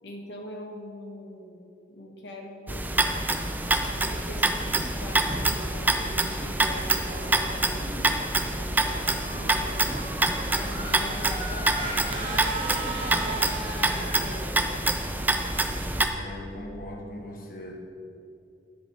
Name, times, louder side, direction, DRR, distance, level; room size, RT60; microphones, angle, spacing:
voice 1, 0.0-3.2 3.8-8.2 8.4-9.7 10.4-14.7, left 1 dB, 85° left, -1 dB, 1.3 m, -42 dB
sound 1, 2.7-16.1, right 2 dB, 10° right, 0.5 m, -26 dB
sound 2, 6.9-14.0, right 1 dB, 75° right, 1.2 m, -48 dB
sound 3, 9.2-14.3, right 2 dB, 30° right, 1.7 m, -36 dB
voice 2, 16.0-17.8, left 1 dB, 50° left, -1 dB, 1.3 m, -40 dB
11.0 x 5.1 x 7.6 m, 2.6 s
head